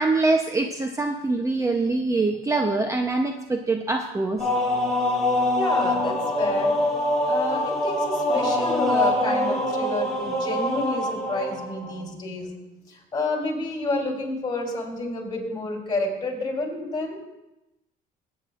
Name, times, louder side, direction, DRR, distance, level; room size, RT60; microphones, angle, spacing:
voice 1, 0.0-4.5, right 3 dB, 20° right, 4 dB, 0.7 m, -24 dB
sound 1, 4.4-12.0, left 1 dB, ahead, 3.1 m, -24 dB
voice 2, 5.5-6.7 7.3-12.5 12.9-17.3, left 2 dB, 25° left, 0 dB, 3.3 m, -29 dB
20.0 x 9.2 x 2.5 m, 0.95 s
cardioid pair, 110°, 17 cm